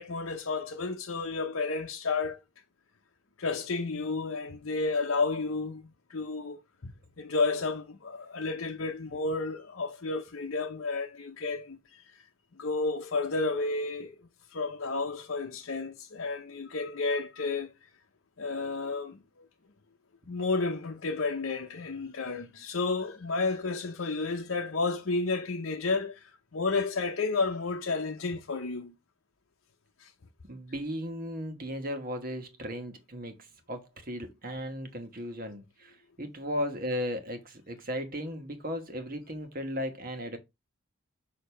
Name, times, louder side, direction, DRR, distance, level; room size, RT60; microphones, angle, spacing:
voice 1, 0.0-2.4 3.4-5.8 6.1-6.9 7.2-12.2 12.6-14.1 14.5-17.7 18.4-19.4 20.3-28.9 30.0-30.1, left 3 dB, 65° left, 0.7 m, -31 dB
voice 2, 30.5-40.4, equal, 40° right, 1.3 m, -36 dB
6.6 x 2.8 x 5.6 m
head